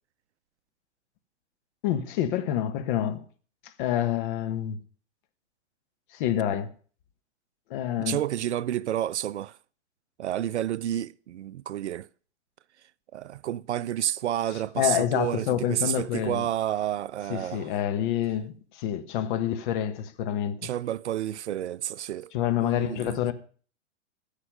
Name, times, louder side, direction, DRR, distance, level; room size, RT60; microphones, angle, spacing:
voice 1, 1.8-3.2 3.6-4.8 6.1-6.7 7.7-8.2 14.8-16.5 17.3-20.7 22.3-23.3, left 10 dB, 45° left, 1.3 m, -27 dB
voice 2, 8.0-9.6 10.2-12.1 13.1-17.7 20.6-22.3 22.6-23.2, right 11 dB, 65° right, 0.5 m, -30 dB
15.5 x 7.4 x 5.3 m
figure-of-eight pair, 110°, 36 cm